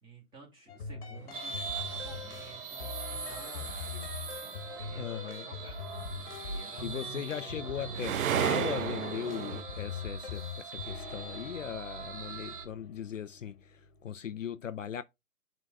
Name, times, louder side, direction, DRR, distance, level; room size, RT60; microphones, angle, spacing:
voice 1, 0.0-4.1 4.4-5.9 6.3-8.0, right 1 dB, 10° right, 2.2 m, -53 dB
sound 1, 0.7-14.1, left 4 dB, 40° left, 1.4 m, -42 dB
sound 2, 1.3-12.7, right 5 dB, 35° right, 1.3 m, -42 dB
sound 3, 1.5-1.6 6.7-9.6, right 10 dB, 65° right, 0.5 m, -32 dB
voice 2, 5.0-5.5 6.8-15.0, left 8 dB, 60° left, 0.6 m, -38 dB
11.5 x 4.0 x 2.3 m
figure-of-eight pair, 145°, 44 cm